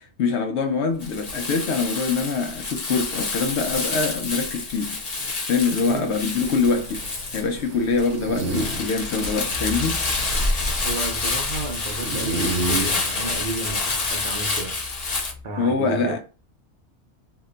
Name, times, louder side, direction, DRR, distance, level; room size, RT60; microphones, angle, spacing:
voice 1, 0.0-5.0 5.4-10.0 15.6-16.2, left 4 dB, 75° left, 0.8 m, -24 dB
Crumpling crinkling, 1.0-15.3, left 3 dB, 40° left, 0.7 m, -28 dB
sound 1, 6.5-12.9, right 2 dB, 80° right, 1.1 m, -32 dB
sound 2, 9.5-15.4, left 2 dB, 25° right, 0.4 m, -39 dB
voice 2, 10.8-14.8 15.4-16.2, right 3 dB, 50° right, 0.7 m, -32 dB
2.8 x 2.1 x 3.7 m
omnidirectional pair, 1.2 m